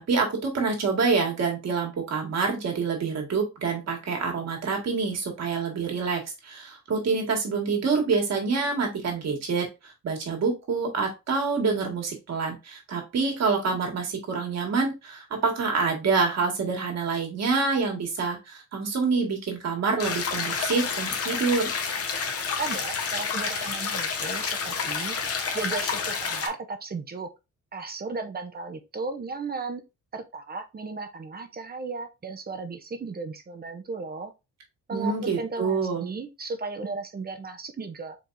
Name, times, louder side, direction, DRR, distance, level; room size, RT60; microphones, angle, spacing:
voice 1, 0.0-21.7 34.9-36.1, right 4 dB, 60° right, 2 dB, 1.9 m, -27 dB
sound 1, 20.0-26.5, left 5 dB, 50° left, 1.0 m, -29 dB
voice 2, 22.6-25.1 25.5-27.3 27.7-29.8 30.1-34.3 34.9-38.2, right 4 dB, 30° right, 7 dB, 0.7 m, -35 dB
4.5 x 3.5 x 2.6 m, 0.25 s
cardioid pair, 90°, 30 cm